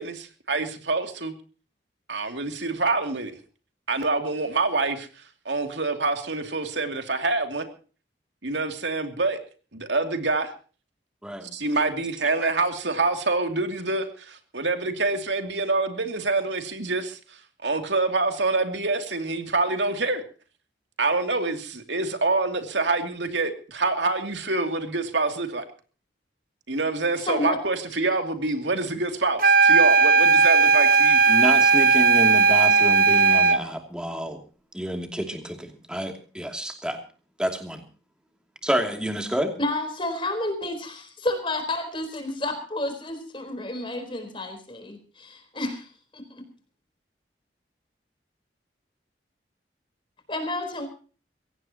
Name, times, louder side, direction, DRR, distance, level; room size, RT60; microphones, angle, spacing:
voice 1, 0.0-1.3 2.1-3.3 3.9-5.1 5.4-7.7 8.4-9.4 9.7-10.5 11.5-17.2 17.6-20.2 21.0-25.6 26.7-31.2, right 3 dB, 80° right, 6 dB, 2.7 m, -26 dB
voice 2, 11.2-11.5 12.4-12.5 31.3-34.4 34.7-37.0 37.4-37.8 38.6-39.5, equal, 5° right, 4 dB, 2.7 m, -29 dB
voice 3, 27.3-27.6 39.6-45.9 46.1-46.2 50.3-50.9, left 2 dB, 30° left, 7 dB, 4.2 m, -30 dB
sound 1, 29.4-33.7, right 4 dB, 50° right, 1.0 m, -17 dB
23.0 x 17.0 x 2.9 m, 0.39 s
head